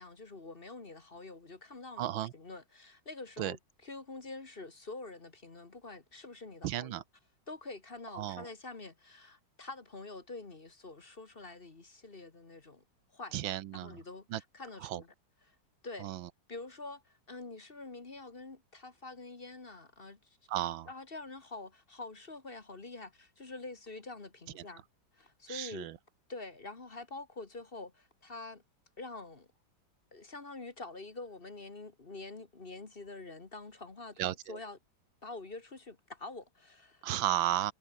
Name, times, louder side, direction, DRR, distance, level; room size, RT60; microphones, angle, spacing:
voice 1, 0.0-7.0 7.5-12.8 13.1-15.1 15.4-15.6 15.8-16.1 16.5-20.4 20.9-24.8 25.1-25.9 26.3-28.6 29.0-29.5 30.1-34.8 35.2-37.1, left 3 dB, 30° left, 1.8 m, -46 dB
voice 2, 2.0-2.3 3.4-3.5 6.6-7.0 8.2-8.4 13.3-13.9 14.3-14.4 14.8-15.0 16.0-16.3 20.5-20.9 25.5-25.9 34.2-34.6 37.0-37.7, right 13 dB, 90° right, 1.6 m, -33 dB
omnidirectional pair, 2.1 m